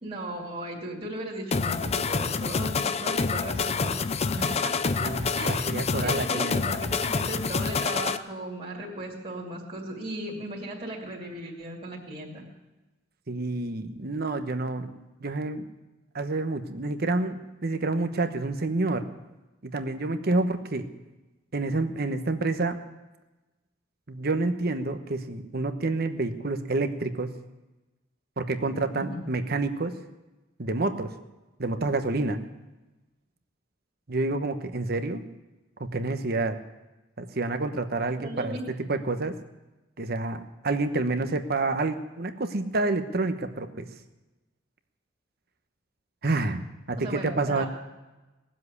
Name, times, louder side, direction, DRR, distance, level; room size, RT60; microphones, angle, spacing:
voice 1, 0.0-4.0 4.4-12.4 28.9-29.2 38.2-38.6 47.0-47.7, right 1 dB, 30° right, -4 dB, 2.7 m, -37 dB
sound 1, 1.5-8.2, left 5 dB, 35° left, 0.5 m, -27 dB
voice 2, 4.9-6.6 13.3-14.9 15.2-15.7 16.1-19.0 19.6-20.9 21.5-22.8 24.1-27.3 28.4-29.9 30.6-31.1 31.6-32.4 34.1-35.3 35.8-36.6 37.2-38.6 38.9-39.4 40.0-43.9 46.2-46.6 46.9-47.6, right 2 dB, 55° right, 8 dB, 1.1 m, -28 dB
19.0 x 7.6 x 9.7 m, 1.1 s
head